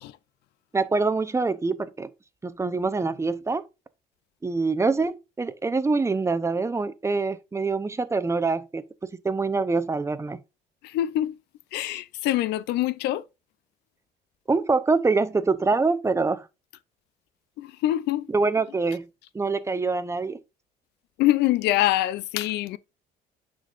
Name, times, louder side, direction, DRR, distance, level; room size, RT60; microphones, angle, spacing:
voice 1, 0.7-2.1 2.4-3.6 4.4-8.8 9.2-10.4 14.5-16.5 18.3-19.1 19.3-20.4, right 3 dB, 15° right, 0.6 m, -25 dB
voice 2, 10.8-11.4 11.7-13.2 17.6-18.3 21.2-22.8, left 14 dB, 85° left, 0.5 m, -24 dB
9.9 x 3.9 x 2.4 m
cardioid pair, 110°, 17 cm